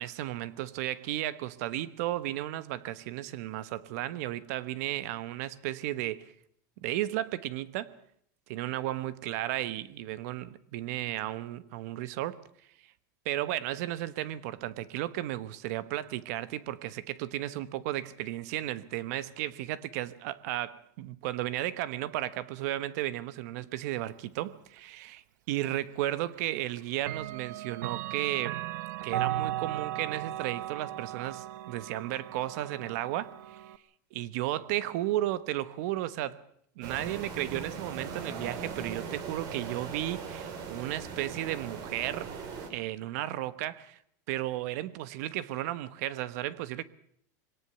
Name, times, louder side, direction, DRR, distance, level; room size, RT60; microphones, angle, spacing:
voice 1, 0.0-6.3 6.8-8.0 8.5-12.4 13.2-28.6 29.0-33.6 34.1-36.4 36.8-42.3 42.7-44.0 44.3-46.8, right 14 dB, 60° right, 1.2 m, -34 dB
Clock, 25.6-25.7 27.0-33.8, right 14 dB, 80° right, 1.1 m, -36 dB
sound 1, 36.8-42.7, right 5 dB, 40° right, 3.9 m, -39 dB
22.5 x 18.0 x 6.9 m
supercardioid pair, 160°, 10 cm